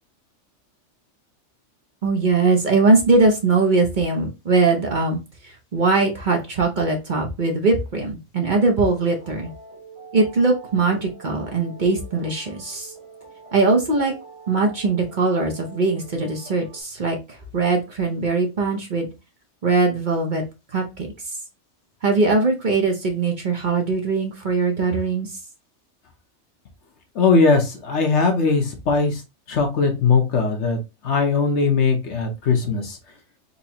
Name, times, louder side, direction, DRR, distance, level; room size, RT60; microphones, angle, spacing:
voice 1, 2.0-5.2 5.7-9.5 10.1-12.9 13.5-14.1 14.5-17.2 17.5-19.1 19.6-20.4 20.7-21.1 22.0-25.3, right 3 dB, 45° right, 2 dB, 0.9 m, -20 dB
sound 1, 8.7-16.8, right 4 dB, 25° right, 1.1 m, -44 dB
voice 2, 27.1-29.2 29.5-30.8 31.0-33.0, left 4 dB, 70° left, 3 dB, 1.2 m, -19 dB
4.2 x 2.9 x 2.8 m, 0.26 s
omnidirectional pair, 1.3 m